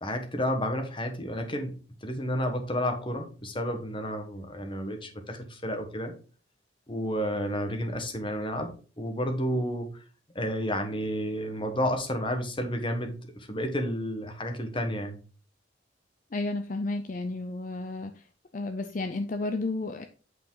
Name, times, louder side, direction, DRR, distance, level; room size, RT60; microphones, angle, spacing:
voice 1, 0.0-6.1 6.9-9.9 10.3-15.2, equal, 25° left, 6 dB, 1.3 m, -31 dB
voice 2, 16.3-18.2 18.5-20.1, left 2 dB, 45° left, 7 dB, 0.5 m, -32 dB
8.6 x 4.9 x 3.9 m, 0.37 s
head